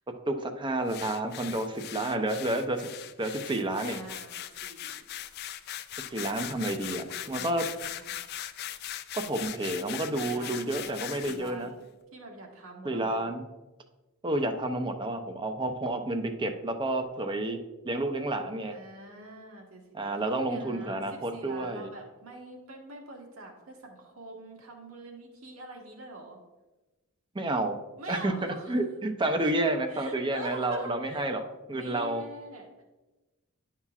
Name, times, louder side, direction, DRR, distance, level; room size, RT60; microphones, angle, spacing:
voice 1, 0.3-2.9 3.2-4.0 6.1-7.7 9.1-11.7 12.8-13.4 14.2-17.6 17.8-18.8 19.9-21.9 27.3-27.8 28.1-28.3 28.7-32.2, right 1 dB, 20° right, 6 dB, 0.6 m, -30 dB
sound 1, 0.9-11.5, left 11 dB, 50° left, 0.3 m, -40 dB
voice 2, 3.9-4.3 4.6-5.1 6.0-6.3 6.7-6.8 7.2-8.2 10.1-11.9 12.1-13.3 18.7-20.1 20.5-26.4 28.0-28.7 29.2-29.5 29.9-31.2 31.7-32.8, right 2 dB, 75° right, 0 dB, 1.5 m, -45 dB
11.0 x 5.7 x 2.4 m, 1.1 s
head